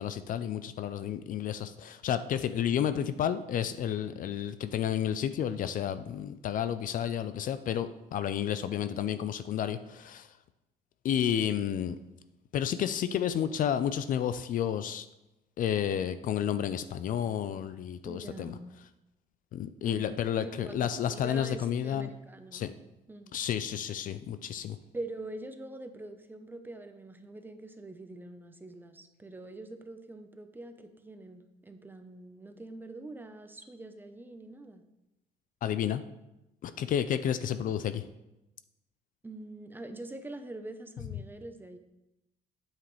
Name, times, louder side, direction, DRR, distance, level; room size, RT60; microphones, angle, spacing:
voice 1, 0.0-10.3 11.0-12.0 12.5-15.0 15.6-18.5 19.5-22.1 22.5-22.7 23.3-24.8 35.6-36.0 36.6-38.0, left 9 dB, 55° left, 12 dB, 0.4 m, -31 dB
voice 2, 18.0-18.7 19.8-22.7 23.1-23.4 24.9-34.8 39.2-41.8, right 2 dB, 10° right, 7 dB, 0.7 m, -44 dB
8.8 x 7.4 x 3.2 m, 0.93 s
cardioid pair, 110°, 17 cm